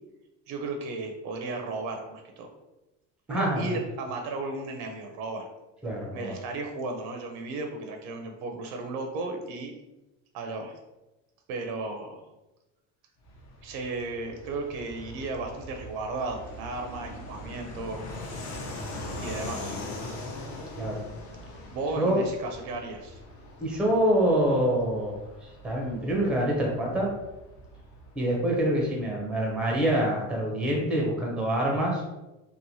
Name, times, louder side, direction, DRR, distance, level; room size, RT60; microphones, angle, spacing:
voice 1, 0.5-2.5 3.3-5.5 6.1-9.7 10.3-10.7 11.5-12.2 13.6-18.0 19.2-19.8 21.7-23.2, right 3 dB, 70° right, 3 dB, 0.5 m, -34 dB
voice 2, 3.3-3.7 5.8-6.3 20.8-21.0 22.0-22.2 23.6-25.1 25.6-27.1 28.2-32.0, right 1 dB, 5° right, -2 dB, 0.5 m, -26 dB
Fixed-wing aircraft airplane, 13.2-29.4, left 1 dB, 50° left, 0.7 m, -42 dB
3.0 x 2.1 x 2.6 m, 1.0 s
cardioid pair, 150°, 37 cm